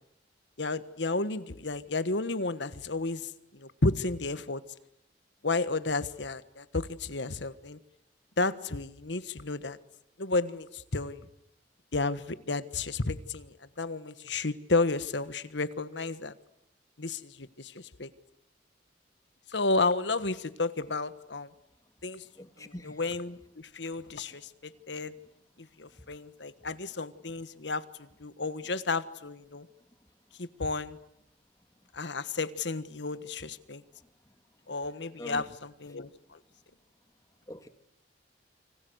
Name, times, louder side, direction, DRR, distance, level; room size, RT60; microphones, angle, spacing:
voice 1, 0.6-4.6 5.4-7.8 8.4-9.8 10.2-11.3 11.9-16.3 17.0-18.1 19.5-21.5 22.0-22.2 22.6-25.1 25.6-29.7 30.4-31.0 31.9-33.8 34.7-36.4, left 3 dB, 75° left, 1.4 m, -32 dB
voice 2, 22.4-23.0 35.2-35.4 37.5-37.7, left 1 dB, 20° left, 1.6 m, -43 dB
29.0 x 25.0 x 8.0 m
head